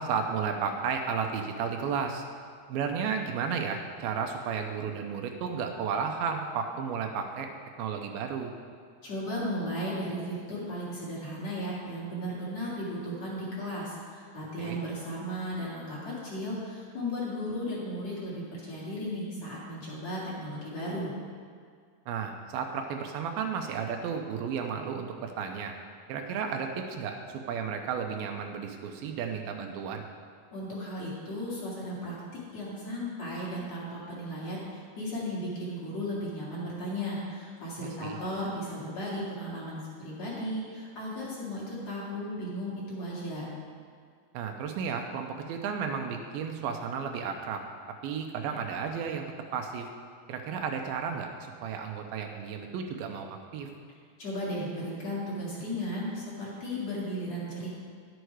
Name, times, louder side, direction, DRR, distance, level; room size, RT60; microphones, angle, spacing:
voice 1, 0.0-2.2 2.7-7.5 7.8-8.5 14.6-14.8 22.1-25.7 26.1-30.0 37.8-38.2 44.3-47.6 48.0-49.3 49.5-49.9 50.3-53.7, right 6 dB, 80° right, 4 dB, 2.5 m, -33 dB
voice 2, 9.0-21.1 30.5-43.5 54.2-57.7, equal, 45° left, -7 dB, 3.0 m, -35 dB
11.5 x 7.9 x 4.7 m, 2.1 s
omnidirectional pair, 4.4 m